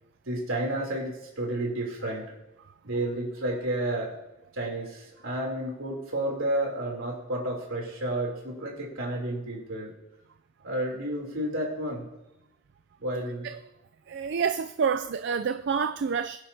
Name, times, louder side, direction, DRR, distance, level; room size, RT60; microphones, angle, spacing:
voice 1, 0.3-2.3 2.8-4.1 4.5-9.9 10.6-12.1 13.0-13.5, right 1 dB, 70° right, 3.3 m, -31 dB
voice 2, 14.1-16.4, right 6 dB, 55° right, 0.4 m, -28 dB
22.0 x 10.0 x 2.8 m
head